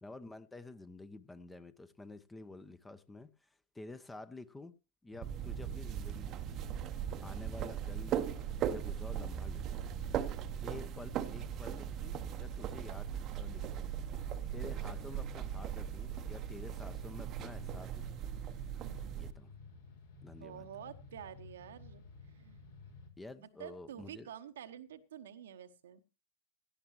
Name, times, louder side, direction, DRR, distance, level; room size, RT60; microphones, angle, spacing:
voice 1, 0.0-4.7 5.0-6.6 7.2-9.9 10.6-13.1 13.4-13.9 14.5-18.3 19.1-19.5 20.2-20.7 23.2-24.3, left 2 dB, 10° left, 0.9 m, -50 dB
sound 1, 5.1-23.1, left 3 dB, 65° left, 3.9 m, -54 dB
sound 2, 5.2-19.3, right 9 dB, 35° right, 0.9 m, -39 dB
voice 2, 18.8-19.1 20.4-22.0 22.3-22.6 23.4-26.0, right 9 dB, 60° right, 1.1 m, -49 dB
17.0 x 12.5 x 3.1 m
figure-of-eight pair, 90°, 0 cm